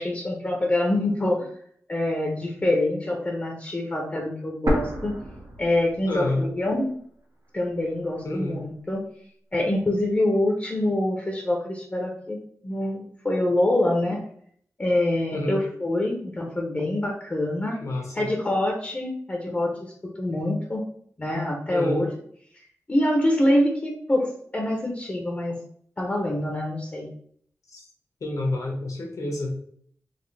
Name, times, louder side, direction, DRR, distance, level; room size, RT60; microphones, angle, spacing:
voice 1, 0.0-1.5 1.9-5.1 5.6-6.9 7.5-9.0 9.5-14.2 14.8-17.8 18.1-20.8 21.2-22.1 22.9-25.6 26.0-27.1, left 1 dB, 25° left, 0 dB, 0.7 m, -25 dB
sound 1, 4.7-6.6 6.9-7.0 7.7-8.7, right 1 dB, 90° right, 1.4 m, -30 dB
voice 2, 6.1-6.5 8.2-8.6 15.3-15.6 17.8-18.3 21.7-22.0 27.7-27.8 28.2-29.5, left 1 dB, 80° left, 1 dB, 1.3 m, -28 dB
4.1 x 3.1 x 3.2 m, 0.62 s
wide cardioid pair, 105°, 6 cm